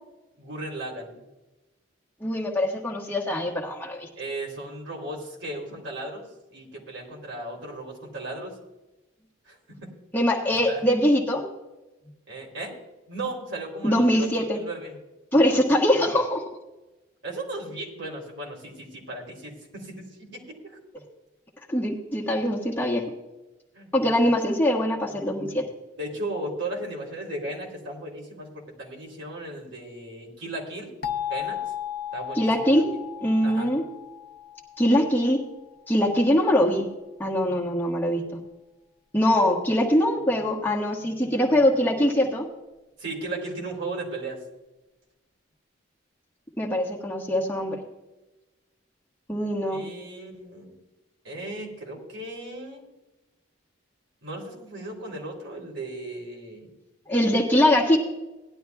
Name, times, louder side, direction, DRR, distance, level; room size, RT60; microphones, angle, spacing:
voice 1, 0.4-1.2 4.2-6.2 6.5-8.5 9.5-9.9 10.7-10.8 12.3-12.7 13.1-15.0 17.2-20.6 23.7-23.9 26.0-30.9 31.3-31.6 32.1-32.9 33.4-33.7 43.0-44.4 49.7-50.7 51.2-52.8 54.2-56.7, right 2 dB, 70° right, -1 dB, 3.3 m, -36 dB
voice 2, 2.2-4.1 10.1-11.4 13.8-14.6 15.3-16.5 21.7-23.0 23.9-25.7 32.3-32.9 33.2-33.8 34.8-35.4 35.9-36.9 37.2-38.2 39.1-42.5 46.6-47.8 49.3-49.8 57.1-58.0, left 1 dB, 10° left, -3 dB, 1.4 m, -22 dB
sound 1, 31.0-35.7, left 10 dB, 50° left, 0.8 m, -35 dB
18.0 x 11.5 x 2.3 m, 1.0 s
head